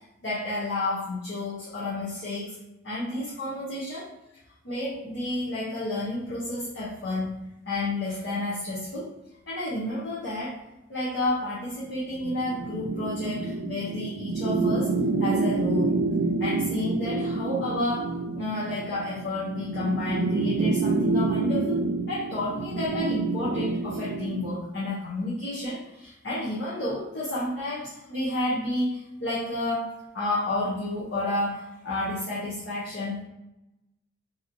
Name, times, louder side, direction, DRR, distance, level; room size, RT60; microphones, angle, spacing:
voice 1, 0.2-2.6 2.8-4.1 4.6-7.3 7.7-9.1 9.5-10.6 10.9-14.9 15.2-16.0 16.4-33.2, left 1 dB, 60° left, -8 dB, 0.7 m, -30 dB
sound 1, 12.2-24.6, right 3 dB, 70° right, 0.3 m, -28 dB
3.0 x 2.7 x 2.6 m, 0.94 s
head